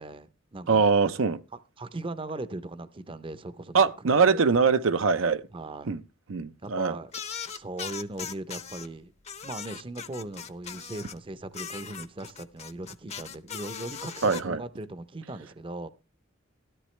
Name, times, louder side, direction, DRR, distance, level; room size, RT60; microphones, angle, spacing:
voice 1, 0.0-0.8 1.8-3.8 4.2-4.5 5.5-5.9 6.6-7.1 7.4-9.1 9.4-15.9, right 2 dB, 25° right, 0.6 m, -38 dB
voice 2, 0.7-1.4 3.7-5.4 5.8-6.0 6.3-7.0 14.2-14.6, right 5 dB, 75° right, 0.6 m, -23 dB
sound 1, 7.1-8.9 9.2-11.2 11.5-14.4, left 7 dB, 30° left, 0.7 m, -39 dB
13.5 x 13.0 x 3.2 m
head